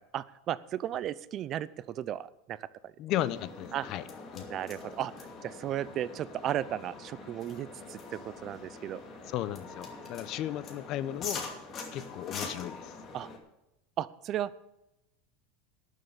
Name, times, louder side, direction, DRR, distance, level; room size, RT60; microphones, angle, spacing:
voice 1, 0.1-2.9 3.7-3.9 4.4-9.0 13.1-13.3 14.0-14.6, right 11 dB, 40° right, 18 dB, 0.5 m, -35 dB
voice 2, 3.0-4.0 4.3-4.4 9.3-11.5 11.9-13.0, left 13 dB, 50° left, 16 dB, 0.8 m, -35 dB
sound 1, 3.1-13.4, left 4 dB, 35° left, 2.5 m, -43 dB
12.5 x 6.7 x 8.7 m, 0.91 s
supercardioid pair, 120°, 0 cm